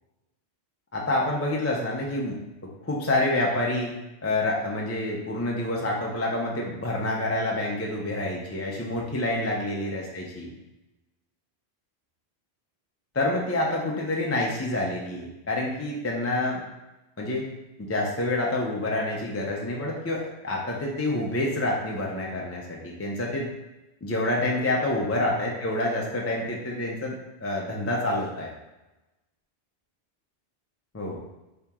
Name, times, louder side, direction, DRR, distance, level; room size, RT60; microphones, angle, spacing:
voice 1, 0.9-2.4 2.8-3.9 4.2-10.5 13.1-16.6 17.2-17.4 17.8-23.5 24.0-27.1 27.4-28.5 30.9-31.2, left 1 dB, 25° left, -2 dB, 0.3 m, -27 dB
4.3 x 2.9 x 3.5 m, 1.0 s
omnidirectional pair, 1.1 m